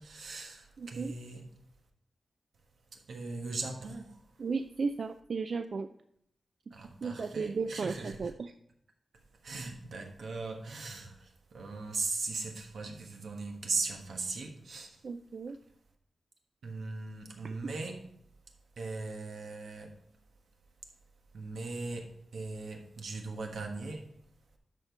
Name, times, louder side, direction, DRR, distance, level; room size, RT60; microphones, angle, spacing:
voice 1, 0.0-1.5 2.9-4.2 6.7-8.3 9.4-14.9 16.6-18.0 18.8-20.0 21.3-24.1, right 3 dB, 85° right, 1.3 m, -39 dB
voice 2, 0.8-1.1 4.4-5.9 6.8-8.5 15.0-15.6 17.4-17.7, right 4 dB, 60° right, 0.3 m, -35 dB
12.5 x 4.4 x 4.5 m
wide cardioid pair, 135°, 0 cm